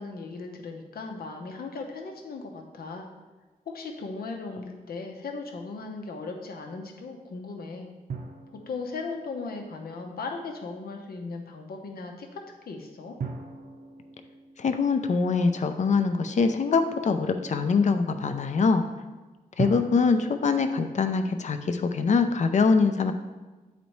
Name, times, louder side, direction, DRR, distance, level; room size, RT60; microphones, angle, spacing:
voice 1, 0.0-3.1 3.7-7.9 8.7-13.2, left 4 dB, 90° left, 2 dB, 0.8 m, -37 dB
sound 1, 8.1-10.4 13.2-16.1 19.6-21.5, right 4 dB, 80° right, 0.7 m, -40 dB
voice 2, 14.6-18.9 19.6-23.1, left 4 dB, 50° left, 8 dB, 0.5 m, -23 dB
9.2 x 4.1 x 3.1 m, 1.3 s
wide cardioid pair, 150°, 15 cm